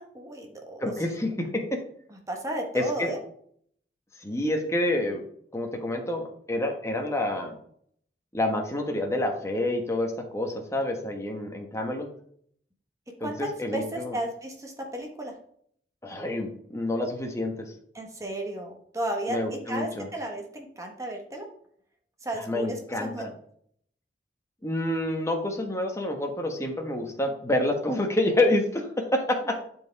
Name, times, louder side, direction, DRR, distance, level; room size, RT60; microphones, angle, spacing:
voice 1, 0.0-0.9 2.3-3.2 13.2-15.3 17.9-21.5 22.2-23.3, right 1 dB, 20° right, 2 dB, 1.4 m, -34 dB
voice 2, 0.8-1.8 2.7-3.1 4.2-5.2 5.5-7.5 8.3-12.1 13.2-14.2 16.0-17.7 19.3-20.1 22.5-23.3 24.6-29.6, left 1 dB, 15° left, 2 dB, 1.4 m, -28 dB
11.5 x 4.8 x 3.5 m, 0.63 s
head